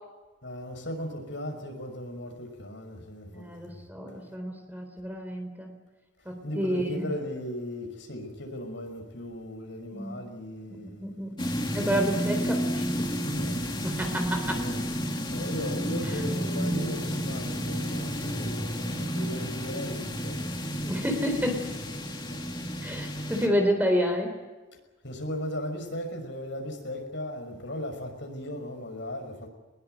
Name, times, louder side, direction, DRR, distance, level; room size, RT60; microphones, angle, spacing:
voice 1, 0.4-3.8 6.4-11.1 12.0-12.2 13.2-13.7 14.4-14.8 15.3-21.1 22.3-22.7 25.0-29.5, left 1 dB, 65° left, 5.9 m, -37 dB
voice 2, 3.3-5.7 6.3-7.1 9.9-10.2 10.8-11.3 11.7-13.1 13.8-14.7 16.1-16.2 20.9-21.8 22.8-24.3, equal, 10° right, 3.9 m, -29 dB
sound 1, 11.4-23.5, equal, 25° left, 2.5 m, -31 dB
23.0 x 21.5 x 8.1 m
head